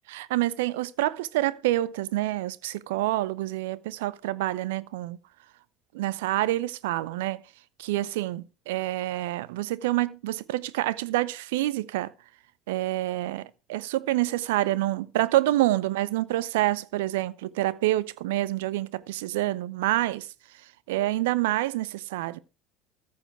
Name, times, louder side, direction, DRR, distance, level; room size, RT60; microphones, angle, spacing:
voice 1, 0.1-5.2 5.9-7.4 7.8-12.1 12.7-20.3 20.9-22.4, right 16 dB, 70° right, 0.7 m, -27 dB
14.0 x 7.0 x 4.7 m
figure-of-eight pair, 65°, 0 cm